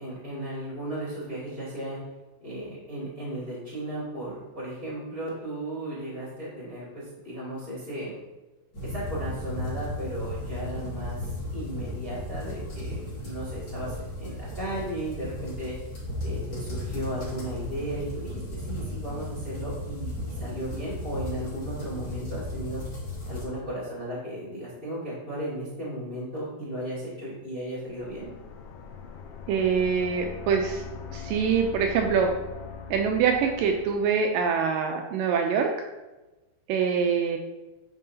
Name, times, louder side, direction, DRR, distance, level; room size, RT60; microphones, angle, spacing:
voice 1, 0.0-2.0 2.4-8.1 8.8-15.7 16.2-22.8 23.3-28.3, right 1 dB, 20° left, -6 dB, 1.5 m, -35 dB
sound 1, 8.7-23.4, left 1 dB, 35° left, 2.3 m, -35 dB
Nightmare Atmosphere, 27.8-34.3, left 6 dB, 80° left, 1.9 m, -41 dB
voice 2, 29.5-30.8 31.1-32.3 32.9-35.7 36.7-37.4, right 6 dB, 85° right, 3 dB, 1.9 m, -24 dB
9.0 x 5.4 x 2.8 m, 1.1 s
omnidirectional pair, 4.4 m